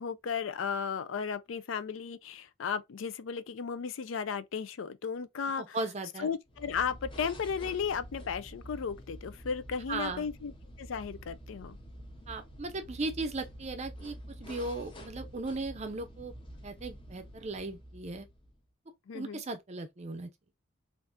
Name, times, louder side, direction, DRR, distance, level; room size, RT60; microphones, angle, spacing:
voice 1, 0.0-5.8 6.2-10.5 10.8-11.8 19.1-19.4, left 6 dB, 70° left, 0.4 m, -35 dB
voice 2, 5.6-6.3 9.9-10.3 12.3-16.3 16.6-18.3 19.1-20.3, right 2 dB, 35° right, 0.5 m, -37 dB
sound 1, 6.5-18.7, equal, 25° left, 0.7 m, -48 dB
3.5 x 2.5 x 2.4 m
head